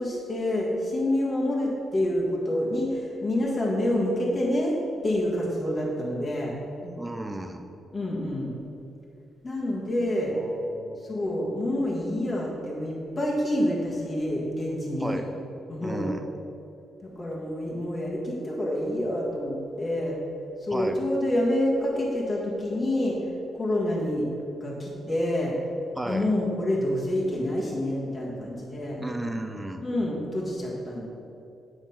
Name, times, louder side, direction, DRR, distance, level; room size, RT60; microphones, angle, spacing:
voice 1, 0.0-4.7 5.0-6.5 7.9-8.5 9.4-10.3 11.0-15.2 15.7-16.1 17.0-20.2 20.6-23.2 23.5-24.3 24.6-25.5 26.0-29.0 29.8-31.0, left 1 dB, 20° left, -5 dB, 1.6 m, -27 dB
voice 2, 6.8-7.7 10.3-11.0 15.0-15.3 15.8-16.2 20.7-21.0 26.0-26.3 29.0-29.9, right 1 dB, 10° right, 5 dB, 0.5 m, -34 dB
9.8 x 5.1 x 5.7 m, 2.6 s
wide cardioid pair, 175°, 0 cm